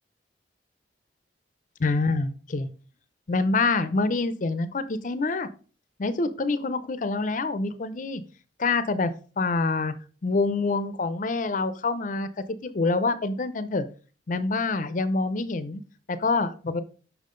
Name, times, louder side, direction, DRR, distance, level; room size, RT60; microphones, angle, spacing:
voice 1, 1.8-2.7 3.3-5.5 6.0-8.2 8.6-9.9 10.2-12.3 12.6-13.9 14.3-15.8 16.1-16.8, left 3 dB, 45° left, 13 dB, 0.5 m, -26 dB
6.0 x 5.6 x 3.7 m, 0.38 s
head